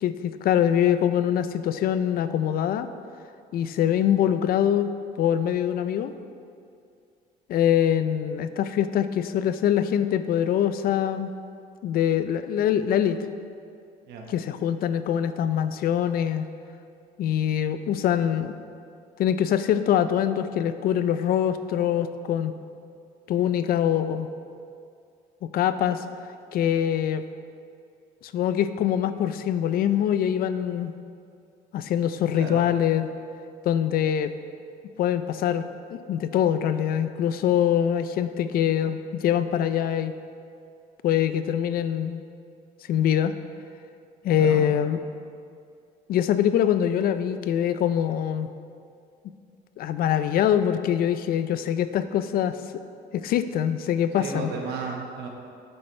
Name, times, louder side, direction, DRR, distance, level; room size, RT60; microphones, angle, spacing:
voice 1, 0.0-2.9 3.5-4.9 5.2-6.1 7.5-11.3 11.8-13.2 14.3-16.5 17.2-18.5 19.2-22.5 23.3-24.3 25.4-26.0 26.5-27.2 28.2-30.9 31.7-33.1 33.7-34.3 35.0-35.6 35.9-40.1 41.0-42.2 42.9-43.3 44.2-45.0 46.1-48.5 49.8-52.6 53.1-54.5, left 10 dB, 60° left, 11 dB, 0.4 m, -24 dB
voice 2, 54.2-55.3, right 4 dB, 80° right, 1 dB, 1.3 m, -33 dB
8.7 x 7.8 x 3.2 m, 2.4 s
cardioid pair, 110°, 17 cm